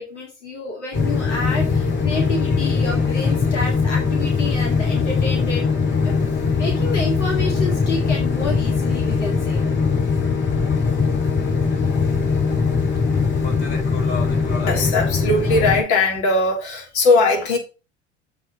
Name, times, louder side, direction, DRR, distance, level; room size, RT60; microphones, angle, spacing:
voice 1, 0.0-5.7 5.9-6.1 6.6-9.6, left 3 dB, 85° left, 2.1 m, -29 dB
sound 1, 0.9-15.8, left 5 dB, 35° left, 4.4 m, -21 dB
voice 2, 14.7-17.6, left 3 dB, 55° left, 3.3 m, -19 dB
7.2 x 5.4 x 5.2 m
hypercardioid pair, 80°, 35 cm